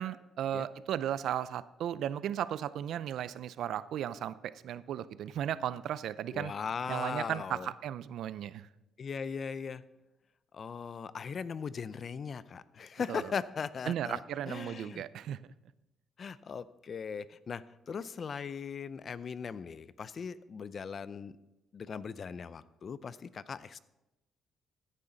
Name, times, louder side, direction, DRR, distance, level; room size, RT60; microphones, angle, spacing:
voice 1, 0.0-6.5 6.9-8.7 13.1-13.3 13.9-15.4, right 10 dB, 75° right, 17 dB, 0.5 m, -35 dB
voice 2, 6.3-7.7 9.0-9.8 10.5-14.2 14.5-15.0 16.2-21.3 21.7-23.8, left 6 dB, 50° left, 17 dB, 0.5 m, -39 dB
14.5 x 10.0 x 4.0 m, 0.97 s
cardioid pair, 90°, 0 cm